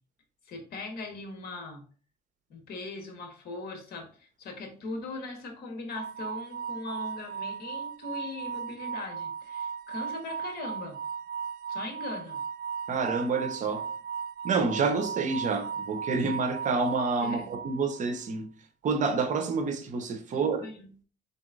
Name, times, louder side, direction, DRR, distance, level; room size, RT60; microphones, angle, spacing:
voice 1, 0.4-1.8 2.5-11.0 11.7-12.4 17.2-17.5 20.3-20.9, left 3 dB, 65° left, 1.3 m, -40 dB
sound 1, 5.9-18.1, right 7 dB, 70° right, 0.4 m, -37 dB
voice 2, 12.9-13.8 14.4-18.5 18.8-20.7, right 4 dB, 50° right, 0.8 m, -28 dB
4.2 x 4.0 x 2.5 m
cardioid pair, 110°, 17 cm